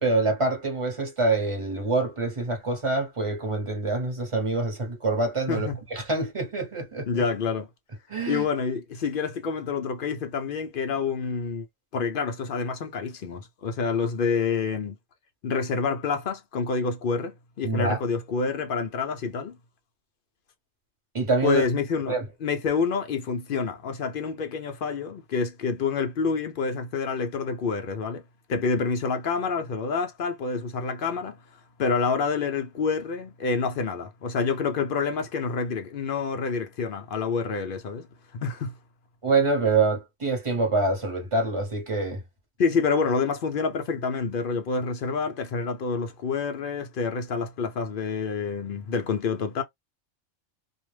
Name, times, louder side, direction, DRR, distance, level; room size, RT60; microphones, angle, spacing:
voice 1, 0.0-7.2 8.1-8.5 17.6-18.0 21.1-21.7 22.1-22.3 39.2-42.2, right 3 dB, 25° right, 0.9 m, -26 dB
voice 2, 7.1-7.7 8.3-11.7 11.9-15.0 15.4-19.6 21.4-28.2 28.5-31.4 31.8-38.1 38.3-38.7 42.6-49.6, left 5 dB, 60° left, 0.6 m, -28 dB
2.4 x 2.1 x 3.2 m
omnidirectional pair, 1.3 m